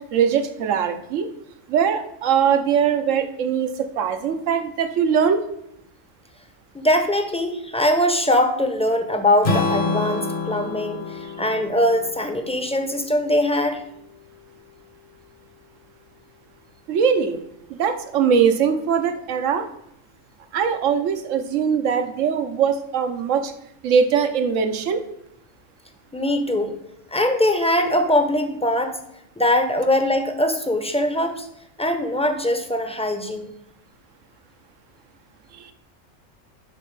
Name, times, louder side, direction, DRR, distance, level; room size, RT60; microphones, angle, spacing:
voice 1, 0.1-1.3 1.7-3.7 4.0-5.4 16.9-17.4 17.8-19.7 20.5-23.5 23.8-25.0 35.6-35.7, right 7 dB, 75° right, 8 dB, 1.2 m, -21 dB
voice 2, 6.7-13.8 26.1-26.8 27.1-29.0 29.4-31.5 31.8-33.5, left 1 dB, 5° left, 6 dB, 0.7 m, -21 dB
Strum, 9.4-13.6, left 3 dB, 45° left, 1.2 m, -28 dB
11.0 x 4.2 x 5.4 m, 0.79 s
omnidirectional pair, 1.3 m